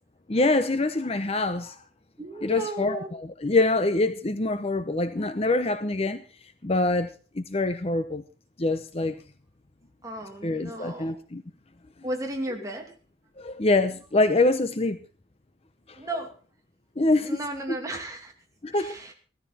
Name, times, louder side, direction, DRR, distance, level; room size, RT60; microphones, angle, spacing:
voice 1, 0.3-1.8 2.4-6.2 6.6-7.1 7.3-8.2 8.6-9.2 10.4-11.4 13.4-15.0 17.0-17.4 17.7-17.8 18.6-18.9, left 2 dB, 35° left, 10 dB, 0.7 m, -25 dB
voice 2, 2.2-3.1 10.0-11.2 12.0-12.9 16.0-16.3 17.2-18.3 18.7-19.1, right 1 dB, 20° right, 2 dB, 2.7 m, -34 dB
16.5 x 13.5 x 4.3 m, 0.38 s
head